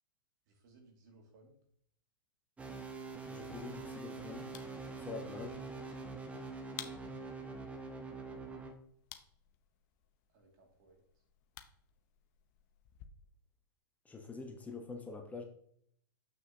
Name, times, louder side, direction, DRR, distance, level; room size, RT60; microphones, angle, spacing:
voice 1, 0.5-1.6 10.3-11.0, right 2 dB, 55° right, 2 dB, 2.3 m, -65 dB
sound 1, 2.6-8.7, right 3 dB, 10° right, 1.0 m, -45 dB
sound 2, 3.1-13.1, left 12 dB, 45° left, 0.8 m, -56 dB
voice 2, 3.3-4.5 5.0-5.6 14.0-15.4, left 4 dB, 10° left, 3 dB, 1.0 m, -45 dB
7.4 x 6.2 x 2.8 m, 0.66 s
hypercardioid pair, 115°, 12 cm